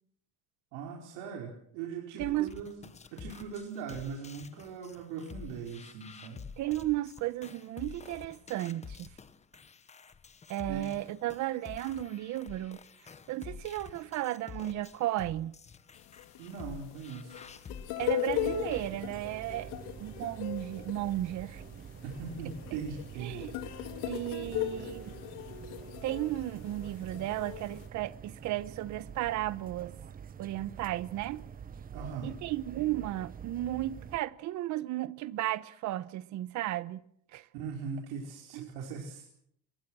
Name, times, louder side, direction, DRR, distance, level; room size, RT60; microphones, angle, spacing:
voice 1, 0.7-2.8 3.1-6.4 10.6-10.9 16.4-17.5 22.0-24.0 31.9-32.3 37.5-39.3, right 5 dB, 80° right, 5.0 m, -40 dB
sound 1, 2.2-18.9, left 6 dB, 20° left, 1.2 m, -49 dB
voice 2, 2.2-2.6 6.6-9.1 10.5-12.8 13.3-15.5 18.0-19.7 20.0-21.6 22.7-22.8 23.2-23.5 24.0-25.1 26.0-29.9 30.4-31.4 32.2-37.0 37.3-37.5 38.5-38.7, right 15 dB, 50° right, 1.1 m, -34 dB
sound 2, 16.0-27.9, left 12 dB, 80° left, 3.2 m, -39 dB
sound 3, 18.3-34.2, right 8 dB, 25° right, 1.0 m, -47 dB
28.5 x 22.5 x 6.4 m
cardioid pair, 150°, 37 cm